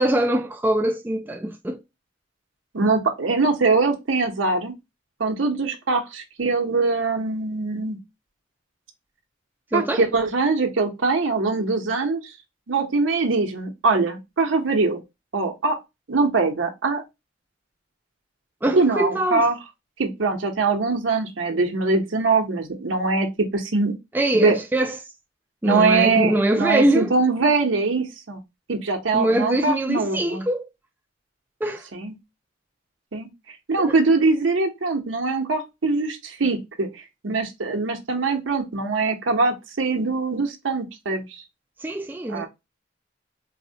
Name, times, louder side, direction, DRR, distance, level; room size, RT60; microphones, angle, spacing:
voice 1, 0.0-1.8 9.7-10.1 18.6-19.5 24.1-25.0 25.6-27.1 29.1-30.7 31.6-31.8 33.8-33.9 41.8-42.5, right 1 dB, 10° right, 0.3 m, -23 dB
voice 2, 2.7-4.7 5.2-8.0 9.7-12.3 12.7-15.0 15.3-15.8 16.1-17.0 18.7-19.6 20.0-24.0 24.4-24.6 25.6-28.4 28.7-30.4 31.9-32.1 33.1-33.3 33.7-41.3 42.3-42.5, right 3 dB, 85° right, 0.8 m, -22 dB
4.0 x 2.1 x 2.7 m
head